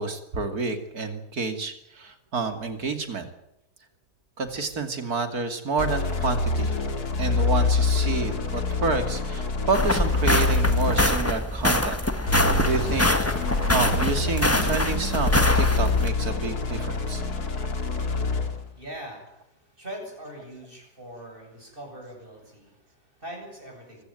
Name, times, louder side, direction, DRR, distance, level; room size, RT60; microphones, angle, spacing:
voice 1, 0.0-3.3 4.4-6.8 7.2-12.4 12.6-13.1 13.7-17.2, right 4 dB, 70° right, 8 dB, 3.2 m, -29 dB
sound 1, 5.8-11.4 12.3-18.7, left 4 dB, 75° left, 2.9 m, -26 dB
sound 2, 9.7-16.1, left 1 dB, 10° left, 1.5 m, -24 dB
voice 2, 17.9-24.1, right 1 dB, 35° right, 2 dB, 8.1 m, -42 dB
24.0 x 16.0 x 9.2 m, 0.83 s
omnidirectional pair, 1.7 m